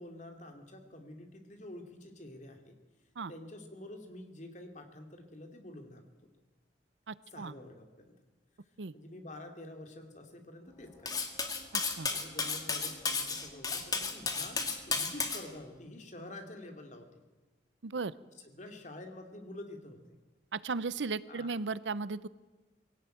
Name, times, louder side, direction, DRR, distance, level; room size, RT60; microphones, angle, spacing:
voice 1, 0.0-2.8 3.3-6.3 7.3-8.2 8.9-11.2 12.1-17.1 18.5-20.2 21.3-21.5, left 1 dB, 40° left, 5 dB, 2.7 m, -48 dB
voice 2, 7.1-7.5 8.8-8.9 11.7-12.1 17.8-18.1 20.5-22.3, right 4 dB, 85° right, 18 dB, 0.7 m, -36 dB
Cutlery silverware, 11.1-15.4, left 4 dB, 20° left, 1.9 m, -33 dB
21.5 x 17.0 x 9.1 m, 1.2 s
head